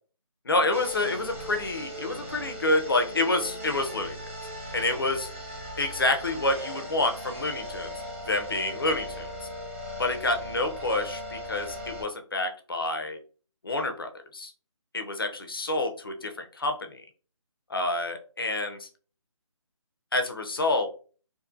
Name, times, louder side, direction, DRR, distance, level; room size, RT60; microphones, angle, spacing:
voice 1, 0.5-4.2 4.7-5.3 5.8-7.9 8.3-9.3 10.0-13.2 13.6-14.5 14.9-17.0 17.7-18.9 20.1-20.9, left 2 dB, 45° left, 5 dB, 0.4 m, -28 dB
sound 1, 0.7-12.0, equal, 25° right, 0.5 m, -38 dB
2.5 x 2.5 x 2.4 m, 0.39 s
hypercardioid pair, 175°, 17 cm